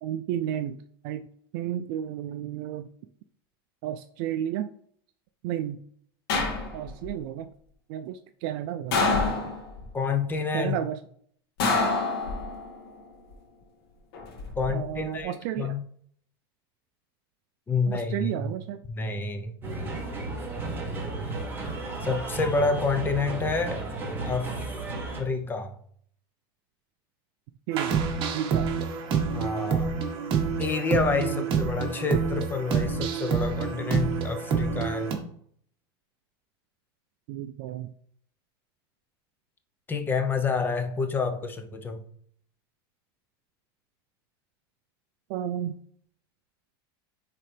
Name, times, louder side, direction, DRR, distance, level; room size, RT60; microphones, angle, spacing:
voice 1, 0.0-1.3 1.5-2.9 3.8-4.7 5.4-5.8 6.7-7.5 7.9-9.4 10.5-11.0 14.7-15.7 17.9-18.8 27.7-28.0 28.3-28.7 31.3-31.5 37.3-37.9 45.3-45.8, right 10 dB, 55° right, 0.4 m, -32 dB
sound 1, 6.3-7.1 8.9-9.9 11.6-12.7 14.1-14.7, left 3 dB, 75° left, 2.0 m, -26 dB
voice 2, 9.9-10.7 14.6-15.8 17.7-18.5 18.9-19.6 22.0-23.8 24.2-24.5 25.2-25.8 29.3-29.9 30.6-35.2 39.9-42.0, left 4 dB, 15° left, 0.7 m, -28 dB
sound 2, 19.6-25.2, right 3 dB, 15° right, 1.6 m, -33 dB
sound 3, 27.7-35.1, right 6 dB, 40° right, 1.3 m, -27 dB
10.0 x 3.8 x 3.4 m
supercardioid pair, 145°, 13 cm